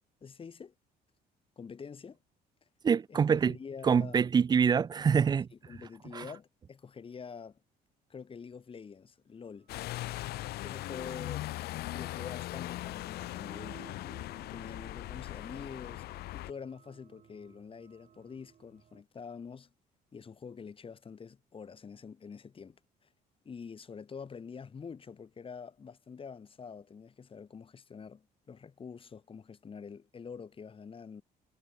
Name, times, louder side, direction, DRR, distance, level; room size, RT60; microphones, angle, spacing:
voice 1, 0.2-0.7 1.6-2.2 3.1-4.2 5.5-7.6 8.1-9.7 10.6-11.5 11.9-19.7 20.1-23.1 23.4-31.2, left 6 dB, 30° left, 2.9 m, -46 dB
voice 2, 2.8-3.6 3.8-5.5 6.1-6.2, right 6 dB, 25° right, 0.4 m, -25 dB
sound 1, 9.5-19.0, right 8 dB, 45° right, 3.6 m, -60 dB
sound 2, 9.7-16.5, left 17 dB, 70° left, 0.5 m, -39 dB
cardioid pair, 110°, 17 cm